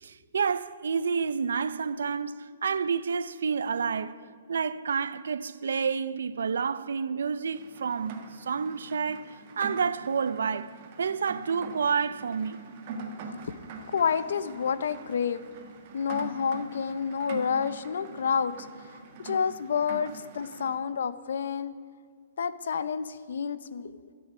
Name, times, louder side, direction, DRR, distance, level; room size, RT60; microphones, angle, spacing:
voice 1, 0.0-4.2 4.5-12.6, right 6 dB, 85° right, 0.6 m, -29 dB
Rain, 7.4-20.8, right 4 dB, 35° right, 1.4 m, -43 dB
voice 2, 13.9-15.4 15.9-18.7 19.2-21.7 22.4-24.0, left 6 dB, 70° left, 0.7 m, -29 dB
13.5 x 7.1 x 9.5 m
hypercardioid pair, 170°, 0 cm